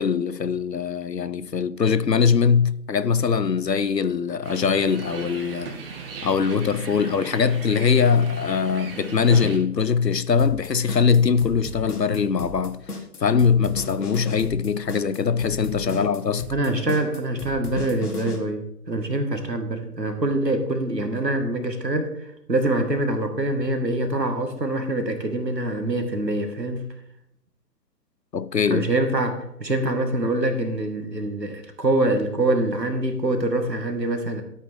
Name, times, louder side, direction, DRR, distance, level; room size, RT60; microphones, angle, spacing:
voice 1, 0.0-5.7 6.2-12.8 13.2-16.5 28.3-28.9, left 6 dB, 85° left, 0.8 m, -22 dB
sound 1, 4.4-9.6, right 5 dB, 35° right, 1.6 m, -36 dB
sound 2, 10.4-18.4, left 3 dB, 65° left, 2.3 m, -34 dB
voice 2, 16.5-26.9 28.7-34.4, right 1 dB, 85° right, 2.1 m, -25 dB
13.5 x 8.5 x 3.7 m
figure-of-eight pair, 135°, 48 cm